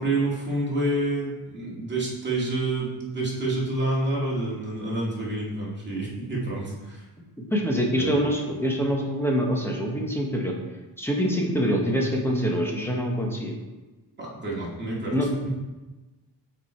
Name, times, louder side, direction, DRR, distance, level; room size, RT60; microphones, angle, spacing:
voice 1, 0.0-7.0 8.0-8.4 14.2-15.1 15.4-15.5, right 2 dB, 25° right, -5 dB, 2.2 m, -28 dB
voice 2, 7.5-10.6 11.0-13.5 15.1-15.3, equal, 5° left, -1 dB, 1.1 m, -25 dB
8.0 x 4.5 x 4.5 m, 1.2 s
wide cardioid pair, 155°, 43 cm